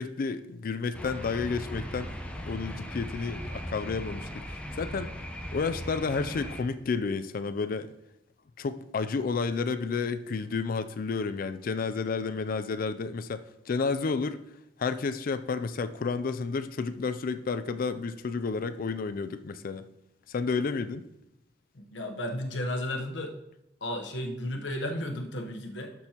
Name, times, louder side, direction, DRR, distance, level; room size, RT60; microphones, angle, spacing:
voice 1, 0.0-2.1 2.5-5.1 5.5-7.9 8.6-14.4 14.8-19.9 20.3-21.0, left 4 dB, 50° left, 11 dB, 0.4 m, -31 dB
sound 1, 0.9-6.6, equal, 5° left, 0.8 m, -38 dB
voice 2, 21.7-23.3 23.8-26.1, left 1 dB, 75° left, 3 dB, 1.0 m, -34 dB
12.0 x 6.2 x 2.9 m, 0.87 s
head